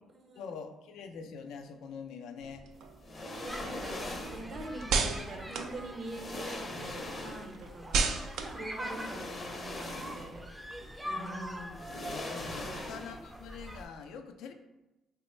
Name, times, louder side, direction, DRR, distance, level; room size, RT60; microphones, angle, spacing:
voice 1, 0.4-2.7 11.1-14.5, left 5 dB, 80° left, 6 dB, 0.3 m, -44 dB
sound 1, 2.4-6.6 6.9-10.4, right 4 dB, 80° right, 0.3 m, -36 dB
sound 2, 3.0-4.5 5.6-5.7 6.0-7.6 8.7-10.5 10.8-10.9 11.7-13.3 13.6-13.8, left 2 dB, 35° left, 0.6 m, -41 dB
voice 2, 3.3-10.4 11.0-11.7 12.5-12.8, right 2 dB, 55° right, 2 dB, 0.7 m, -45 dB
sound 3, 3.5-13.8, equal, 10° right, 0.4 m, -44 dB
3.0 x 2.0 x 4.1 m, 1.0 s
cardioid pair, 85°, 0 cm